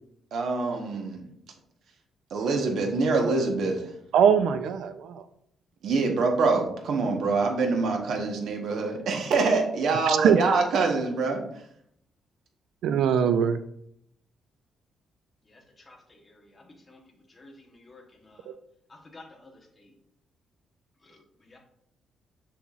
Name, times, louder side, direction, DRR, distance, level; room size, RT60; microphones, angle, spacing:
voice 1, 0.3-1.2 2.3-3.9 5.8-11.4, right 3 dB, 60° right, 2 dB, 1.1 m, -25 dB
voice 2, 4.1-5.2 10.1-10.4 12.8-13.6, right 8 dB, 80° right, 10 dB, 0.4 m, -22 dB
voice 3, 15.4-18.5 18.9-19.9 21.0-21.6, left 2 dB, 20° left, 0 dB, 1.1 m, -53 dB
7.0 x 5.9 x 2.4 m, 0.72 s
cardioid pair, 170°, 0 cm